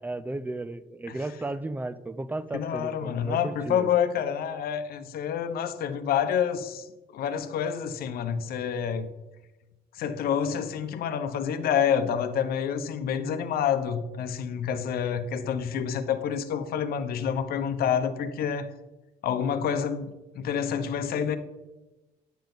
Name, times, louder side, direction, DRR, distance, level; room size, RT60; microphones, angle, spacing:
voice 1, 0.0-3.9, right 2 dB, 10° right, 0.5 m, -34 dB
voice 2, 2.5-6.9 7.1-9.1 10.0-18.7 19.2-20.1 20.3-21.4, left 8 dB, 65° left, 0.9 m, -28 dB
10.0 x 6.9 x 4.0 m
cardioid pair, 110°, 17 cm